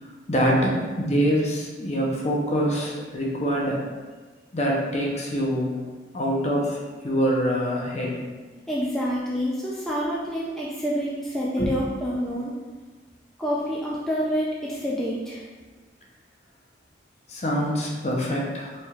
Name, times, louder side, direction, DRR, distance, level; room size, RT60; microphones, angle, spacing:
voice 1, 0.0-3.8 4.5-5.8 6.1-8.3 11.6-11.7 17.3-18.9, equal, 35° left, -2 dB, 0.6 m, -25 dB
voice 2, 8.7-12.5 13.4-15.4, equal, ahead, -6 dB, 0.3 m, -27 dB
4.3 x 3.2 x 2.3 m, 1.3 s
head